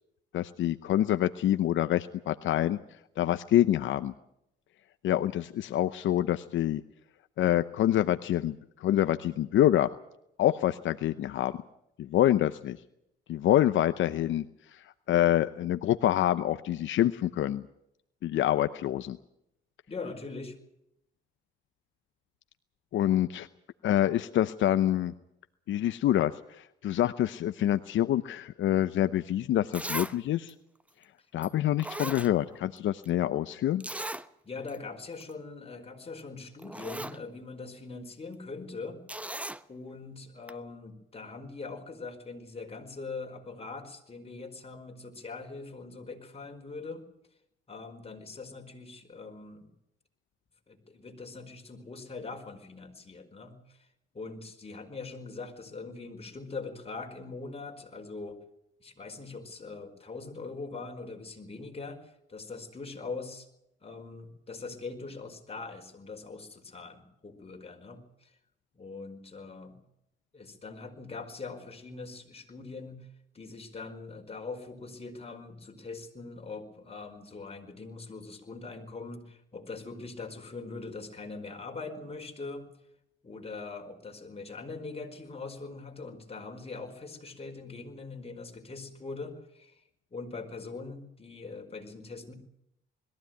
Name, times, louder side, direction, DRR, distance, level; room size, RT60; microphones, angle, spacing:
voice 1, 0.3-2.8 3.2-4.1 5.0-6.8 7.4-9.9 10.4-11.5 12.0-12.8 13.3-14.4 14.7-17.6 18.2-19.2 22.9-23.5 23.8-25.1 25.7-30.5 31.3-33.8, left 12 dB, 75° left, 12 dB, 0.8 m, -26 dB
voice 2, 19.9-20.6 34.4-39.0 39.7-47.0 47.7-49.7 50.7-53.9 54.1-58.4 58.8-63.5 63.8-68.3 68.7-69.8 70.3-73.1 73.3-82.7 83.2-89.8 90.1-92.3, left 3 dB, 30° left, 4 dB, 5.0 m, -42 dB
Zipper (clothing), 29.2-29.3 29.7-30.2 30.5-30.6 31.4-31.5 31.8-32.8 33.0-33.1 33.8-34.3 34.7-34.8 35.1-35.3 36.2-36.3 36.6-37.2 39.1-39.6 40.5-40.6, right 1 dB, 5° right, 1.0 m, -37 dB
21.5 x 15.0 x 9.4 m, 0.78 s
cardioid pair, 90°, 20 cm